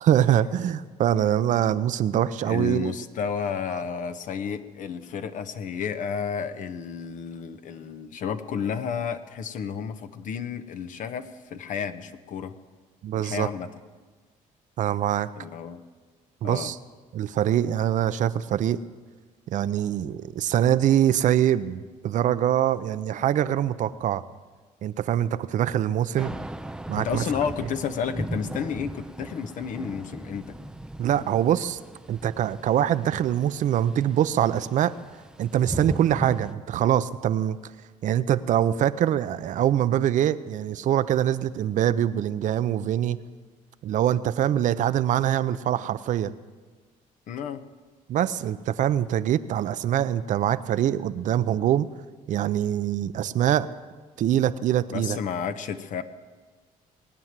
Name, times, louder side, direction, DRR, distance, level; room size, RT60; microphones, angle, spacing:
voice 1, 0.0-3.0 13.0-13.5 14.8-15.3 16.4-16.8 17.1-18.8 19.5-24.2 24.8-26.3 26.9-27.2 31.0-31.8 32.1-34.9 35.4-37.6 38.0-43.2 43.8-46.3 48.1-51.9 52.3-53.7 54.2-55.2, right 11 dB, 65° right, 13 dB, 0.6 m, -24 dB
voice 2, 2.4-12.6 13.2-13.7 15.4-15.8 16.4-16.7 26.9-30.6 47.3-47.6 54.9-56.0, left 7 dB, 65° left, 10 dB, 1.1 m, -31 dB
Thunder / Rain, 26.2-36.5, right 1 dB, 5° right, 0.5 m, -38 dB
19.5 x 9.5 x 7.5 m, 1.4 s
cardioid pair, 105°, 14 cm